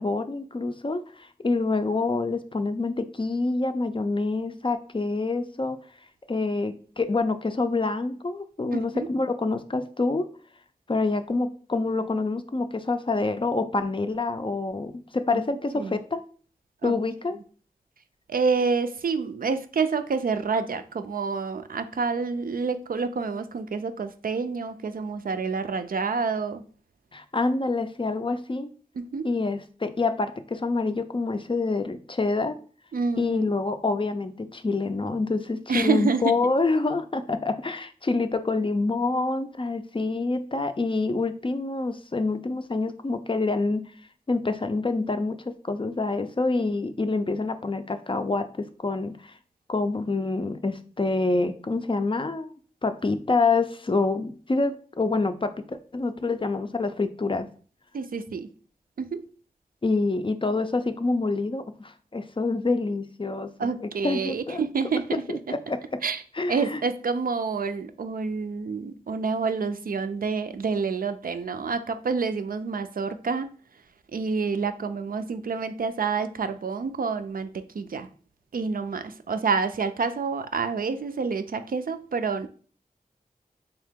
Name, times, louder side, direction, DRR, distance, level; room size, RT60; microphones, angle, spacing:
voice 1, 0.0-5.8 6.3-10.3 10.9-16.2 16.8-17.4 27.1-28.7 29.2-32.6 33.2-43.9 44.3-49.3 49.7-52.5 52.8-57.5 59.8-64.6 65.3-65.8 66.3-66.8, left 3 dB, 35° left, 9 dB, 0.4 m, -27 dB
voice 2, 8.7-9.1 15.3-15.4 15.8-16.0 16.8-16.9 18.3-26.6 29.0-29.3 32.9-33.4 35.7-36.4 57.9-58.5 59.0-59.3 63.6-65.4 66.0-66.2 66.5-73.5 74.1-78.1 78.5-82.5, right 5 dB, 70° right, 9 dB, 0.4 m, -28 dB
3.6 x 2.8 x 3.5 m, 0.42 s
wide cardioid pair, 45°, 15 cm